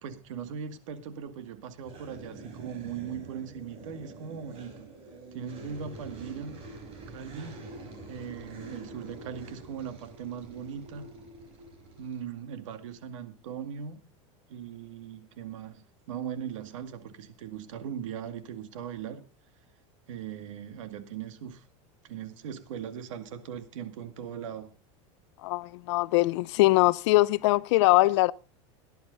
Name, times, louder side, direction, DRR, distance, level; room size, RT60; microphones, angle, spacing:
voice 1, 0.0-4.9 5.3-6.6 7.1-7.7 8.1-11.1 12.0-14.0 14.5-19.2 20.1-21.6 22.0-24.7, right 8 dB, 80° right, 2.0 m, -39 dB
sound 1, 1.8-12.2, right 3 dB, 35° right, 4.7 m, -46 dB
voice 2, 25.4-28.3, left 20 dB, 65° left, 0.6 m, -22 dB
18.0 x 10.5 x 3.9 m
supercardioid pair, 155°, 16 cm